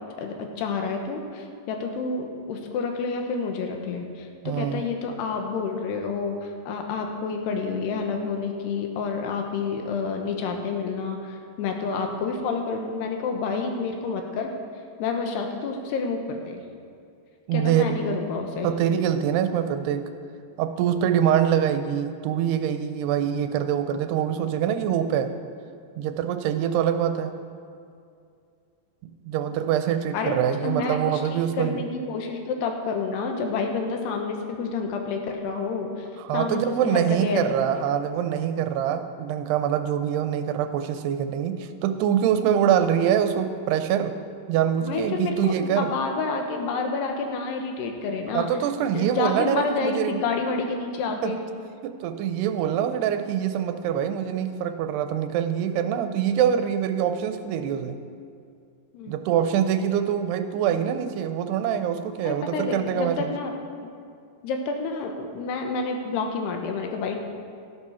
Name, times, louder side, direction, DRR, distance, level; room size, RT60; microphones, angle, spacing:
voice 1, 0.2-14.5 15.0-16.6 17.5-18.7 30.1-30.3 30.6-36.1 36.3-37.4 44.9-48.5 48.9-51.4 58.9-59.1 62.2-63.5 64.4-67.2, left 4 dB, 85° left, 3 dB, 3.3 m, -29 dB
voice 2, 4.4-4.8 17.5-18.0 18.6-20.1 20.6-25.3 26.0-27.3 29.3-31.8 36.2-44.1 44.5-45.9 48.3-50.2 51.2-51.4 51.8-58.0 59.1-63.3, right 9 dB, 90° right, 9 dB, 2.8 m, -24 dB
13.5 x 11.0 x 5.7 m, 2.4 s
omnidirectional pair, 4.6 m